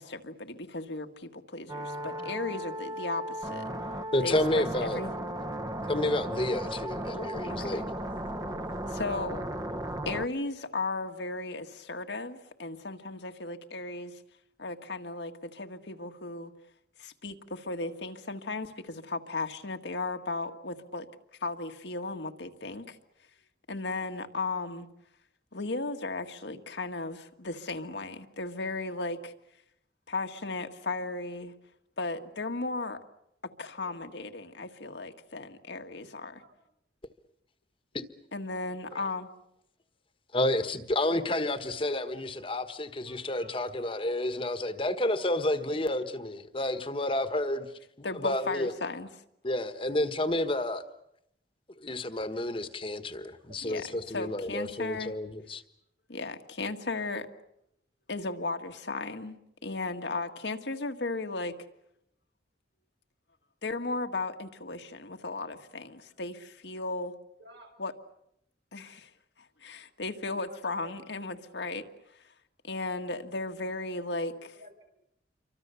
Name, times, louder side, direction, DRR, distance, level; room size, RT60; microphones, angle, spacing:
voice 1, 0.0-3.7 4.2-5.1 7.6-7.8 8.9-9.5 10.0-14.2 14.6-16.5 17.0-21.1 21.4-23.0 23.7-24.9 25.5-29.3 30.1-31.5 32.0-33.0 33.6-36.4 38.3-39.3 48.0-49.1 53.6-55.1 56.1-57.3 58.1-59.4 59.6-61.6 63.6-67.1 67.8-67.9 68.7-69.1 69.4-71.8 72.6-74.3, left 3 dB, 80° left, 1.7 m, -35 dB
sound 1, 1.7-10.3, right 1 dB, 20° right, 1.0 m, -36 dB
voice 2, 4.1-5.0 5.9-7.8 37.9-38.0 40.3-47.7 48.0-48.7 49.4-50.8 51.8-55.6, left 1 dB, 30° left, 1.4 m, -30 dB
voice 3, 33.8-34.4 36.4-36.6 38.6-39.0 41.4-41.5 41.8-41.9 43.0-43.6 53.4-53.6 54.0-54.1 67.4-67.7 70.4-70.9 74.3-74.8, right 1 dB, 70° right, 6.5 m, -54 dB
28.5 x 24.5 x 7.0 m
head